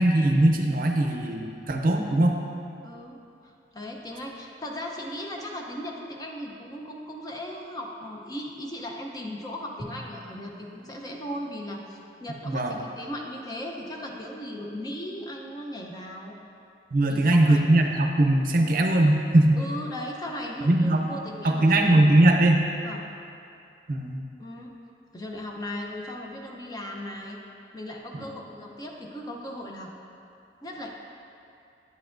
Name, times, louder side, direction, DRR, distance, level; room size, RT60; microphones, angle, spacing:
voice 1, 0.0-1.4 1.7-2.4 12.4-12.8 16.9-19.6 20.6-21.1 21.4-22.7 23.9-24.2 28.1-28.3, right 1 dB, 50° right, 3 dB, 0.6 m, -20 dB
voice 2, 2.8-16.3 17.1-17.7 19.6-22.0 22.8-23.0 24.4-24.7 25.1-27.4 27.7-29.9 30.6-30.9, left 1 dB, 20° left, 0 dB, 0.6 m, -37 dB
Drum, 9.8-12.7, equal, 5° left, 1.4 m, -47 dB
9.4 x 8.1 x 2.5 m, 2.6 s
head